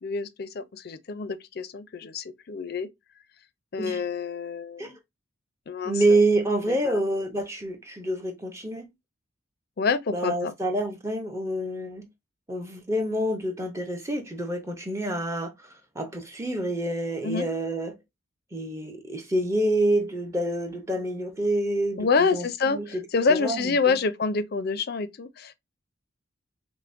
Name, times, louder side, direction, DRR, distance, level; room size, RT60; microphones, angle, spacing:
voice 1, 0.0-2.9 3.7-5.0 5.7-6.2 6.7-7.0 9.8-10.5 17.2-17.5 22.0-25.5, left 4 dB, 50° left, 0.4 m, -27 dB
voice 2, 5.9-8.9 10.1-12.1 12.5-15.5 16.0-18.0 18.5-23.0 23.3-24.0, right 1 dB, 15° right, 0.6 m, -27 dB
5.6 x 2.1 x 2.5 m
head